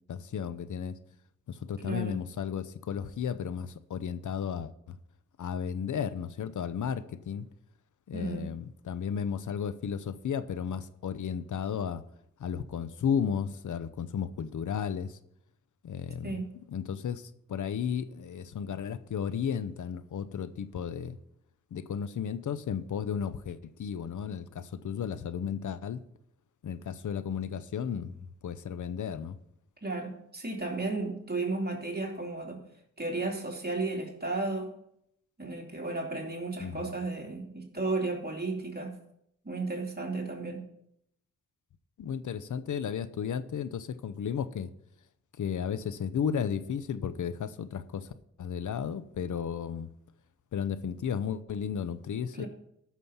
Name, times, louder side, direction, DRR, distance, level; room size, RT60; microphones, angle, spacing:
voice 1, 0.1-1.0 1.5-5.0 5.4-7.5 8.1-12.0 12.4-15.2 15.8-16.3 16.7-21.2 21.7-26.0 26.6-29.4 36.6-36.9 42.0-44.7 45.4-48.1 48.4-49.9 50.5-52.4, left 7 dB, 80° left, 0.7 m, -34 dB
voice 2, 1.8-2.2 8.1-8.5 16.2-16.5 29.8-32.6 33.0-34.7 35.4-39.0 39.4-40.7 52.3-52.5, right 3 dB, 30° right, 2.9 m, -34 dB
13.5 x 6.3 x 5.7 m
cardioid pair, 55°, 30 cm